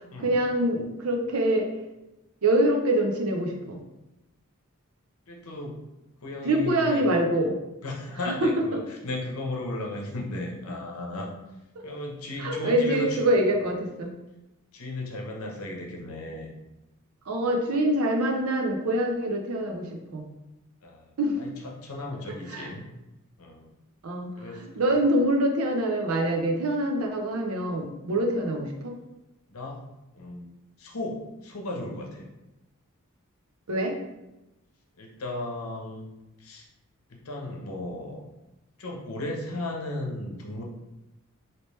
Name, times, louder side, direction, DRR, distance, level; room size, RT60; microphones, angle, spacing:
voice 1, 0.2-1.7 2.4-3.8 6.4-7.5 8.3-8.8 12.4-14.1 17.3-20.2 21.2-21.4 22.5-22.7 24.0-28.9 33.7-34.0, right 1 dB, 85° right, 2 dB, 0.6 m, -25 dB
voice 2, 5.3-5.8 6.2-7.0 7.8-11.3 11.8-13.2 14.7-16.5 20.8-22.8 23.4-23.7 24.4-24.9 28.1-28.2 29.5-29.8 30.1-30.5 30.8-32.3 35.0-36.1 36.4-36.6 37.1-38.2 38.8-40.6, left 1 dB, 90° left, 0 dB, 0.7 m, -35 dB
3.1 x 2.9 x 3.2 m, 0.96 s
head